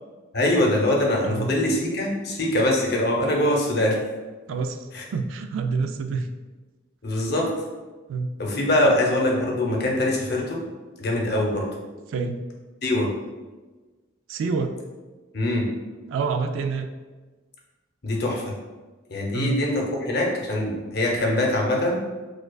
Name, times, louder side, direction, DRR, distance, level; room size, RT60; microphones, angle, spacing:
voice 1, 0.3-4.0 4.9-5.0 7.0-7.5 8.4-10.6 11.0-11.7 12.8-13.1 15.3-15.7 18.0-18.5 19.1-22.0, left 1 dB, 55° left, -1 dB, 0.6 m, -23 dB
voice 2, 4.5-4.8 5.1-6.3 8.1-8.3 8.8-9.0 12.1-12.4 14.3-14.7 16.1-16.9 19.3-19.6, right 4 dB, 80° right, 6 dB, 0.3 m, -27 dB
4.6 x 2.3 x 2.3 m, 1.3 s
head